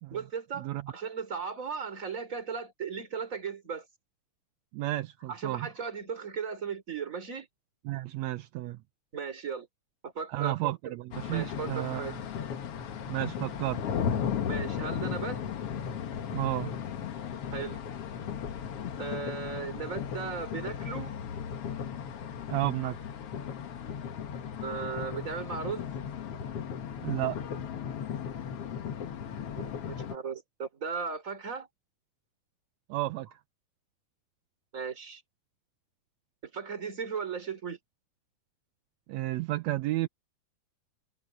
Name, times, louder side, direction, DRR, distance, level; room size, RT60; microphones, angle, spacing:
voice 1, 0.1-3.9 5.3-7.5 9.1-9.7 10.0-10.9 11.3-12.2 14.5-15.4 17.5-17.8 19.0-21.1 22.8-22.9 24.6-25.9 29.6-31.7 34.7-35.2 36.4-37.8, right 6 dB, 25° right, 3.5 m, -37 dB
voice 2, 4.7-5.7 7.8-8.8 10.3-12.2 13.1-13.8 16.3-16.7 22.5-23.0 27.0-27.4 32.9-33.3 39.1-40.1, right 16 dB, 80° right, 1.6 m, -32 dB
sound 1, 11.1-30.2, left 8 dB, 55° left, 2.0 m, -36 dB
omnidirectional pair, 3.8 m